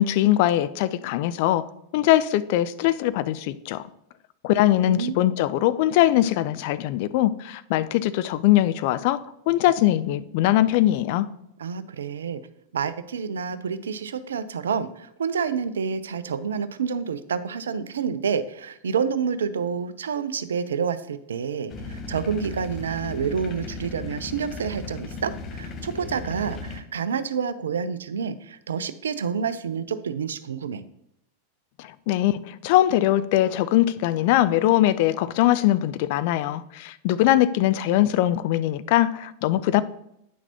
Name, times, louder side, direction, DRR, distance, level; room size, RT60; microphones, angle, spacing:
voice 1, 0.0-3.8 4.4-11.3 31.8-39.8, left 14 dB, 50° left, 14 dB, 0.4 m, -21 dB
voice 2, 11.6-12.4 12.7-30.8, right 6 dB, 65° right, 14 dB, 0.4 m, -28 dB
sound 1, 21.7-26.8, left 3 dB, 30° left, 0.9 m, -36 dB
9.2 x 5.9 x 2.9 m, 0.77 s
figure-of-eight pair, 90°, 0 cm